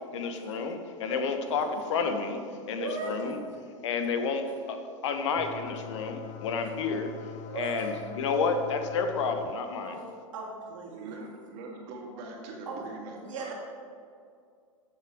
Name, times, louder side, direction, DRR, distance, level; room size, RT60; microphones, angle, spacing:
voice 1, 0.1-3.4 3.8-7.1 7.5-10.0, left 4 dB, 60° left, 7 dB, 1.1 m, -30 dB
voice 2, 2.8-3.1 7.5-7.9 9.8-11.0 12.7-12.8 13.2-13.5, right 4 dB, 70° right, -3 dB, 2.7 m, -37 dB
sound 1, 5.4-9.5, left 12 dB, 40° left, 0.7 m, -43 dB
voice 3, 10.8-13.5, right 3 dB, 50° right, -1 dB, 2.4 m, -42 dB
14.5 x 7.1 x 3.5 m, 2.3 s
figure-of-eight pair, 95°, 17 cm